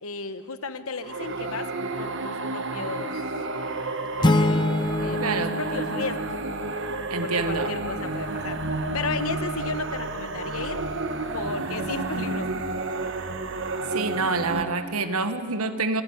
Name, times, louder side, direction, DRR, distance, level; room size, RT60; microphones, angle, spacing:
voice 1, 0.0-1.7 2.0-3.2 4.2-4.7 5.0-6.3 7.2-8.6 8.9-10.9 11.3-12.8, left 4 dB, 75° left, 11 dB, 1.1 m, -34 dB
sound 1, 1.0-14.6, right 2 dB, 55° right, 1.3 m, -31 dB
sound 2, 4.2-7.0, left 1 dB, 20° left, 0.5 m, -25 dB
voice 2, 5.2-5.5 7.1-7.7 13.9-16.0, right 4 dB, 85° right, 10 dB, 1.4 m, -27 dB
26.5 x 14.0 x 9.9 m, 2.3 s
head